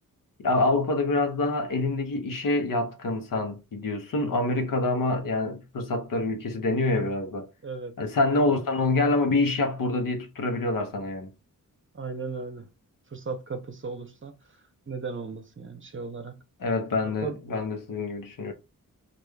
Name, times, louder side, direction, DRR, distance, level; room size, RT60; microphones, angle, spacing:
voice 1, 0.4-7.5 8.0-11.3 16.6-18.5, left 2 dB, 70° left, 1.0 m, -26 dB
voice 2, 7.6-7.9 8.3-8.5 11.9-12.7 13.1-16.4 17.2-17.4, right 4 dB, 35° right, 0.8 m, -36 dB
4.8 x 2.5 x 2.3 m
wide cardioid pair, 85°, 35 cm